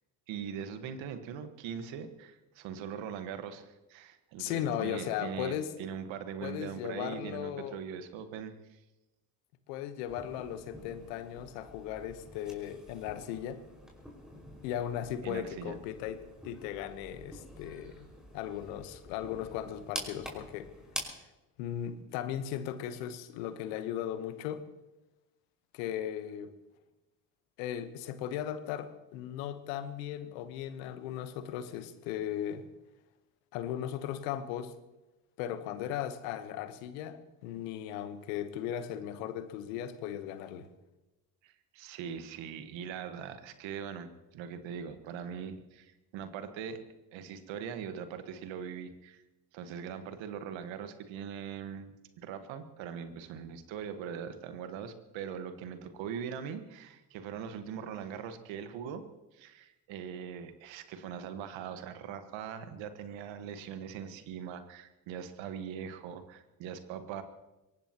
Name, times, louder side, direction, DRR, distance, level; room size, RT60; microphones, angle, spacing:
voice 1, 0.3-8.8 15.2-15.8 41.4-46.8 47.1-49.2 49.5-59.0 59.3-67.2, right 7 dB, 70° right, 9 dB, 1.5 m, -41 dB
voice 2, 4.4-5.7 6.4-7.8 9.7-13.6 14.6-18.1 18.3-20.7 21.6-24.7 25.7-26.5 27.6-32.6 33.5-34.7 35.4-40.7, left 10 dB, 80° left, 11 dB, 1.2 m, -37 dB
sound 1, 10.1-21.0, equal, ahead, 5.2 m, -47 dB
23.5 x 18.5 x 3.0 m, 1.0 s
hypercardioid pair, 55°, 48 cm